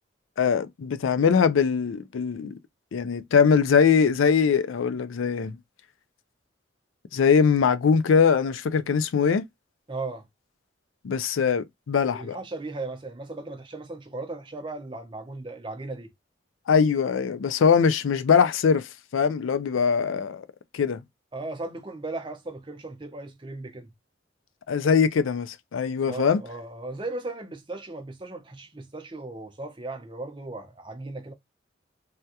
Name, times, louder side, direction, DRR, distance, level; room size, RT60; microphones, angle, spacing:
voice 1, 0.4-2.6 2.9-5.6 7.1-9.4 11.0-12.4 16.7-20.5 20.7-21.0 24.7-26.4, left 6 dB, 90° left, 0.4 m, -22 dB
voice 2, 9.9-10.3 12.1-16.1 21.3-23.9 26.1-31.3, right 2 dB, 25° right, 0.6 m, -37 dB
3.4 x 2.2 x 2.7 m
head